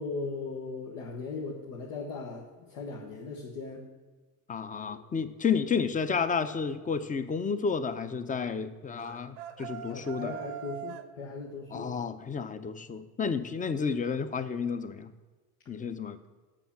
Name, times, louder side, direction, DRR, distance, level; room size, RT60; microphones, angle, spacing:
voice 1, 0.0-3.8 4.9-5.0 9.9-11.9, left 3 dB, 85° left, -1 dB, 1.2 m, -38 dB
voice 2, 4.5-10.4 11.7-15.1 15.7-16.2, left 5 dB, 20° left, 12 dB, 0.6 m, -31 dB
sound 1, 9.0-11.1, right 10 dB, 80° right, 0.7 m, -42 dB
7.0 x 5.8 x 7.0 m, 1.3 s
supercardioid pair, 85°, 41 cm